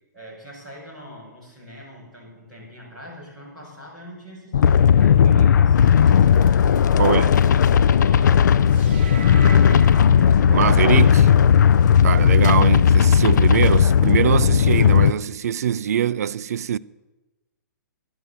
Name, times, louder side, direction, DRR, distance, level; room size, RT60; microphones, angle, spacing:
voice 1, 0.1-6.7 7.2-8.7 9.1-11.1 13.5-13.7 14.7-15.0, equal, ahead, 5.6 m, -42 dB
sound 1, 4.5-15.1, left 8 dB, 65° left, 0.4 m, -15 dB
voice 2, 7.0-7.3 10.5-11.2 12.0-16.8, right 9 dB, 50° right, 0.4 m, -22 dB
sound 2, 8.7-13.1, right 4 dB, 30° right, 0.8 m, -35 dB
11.0 x 10.5 x 7.1 m
hypercardioid pair, 180°, 10 cm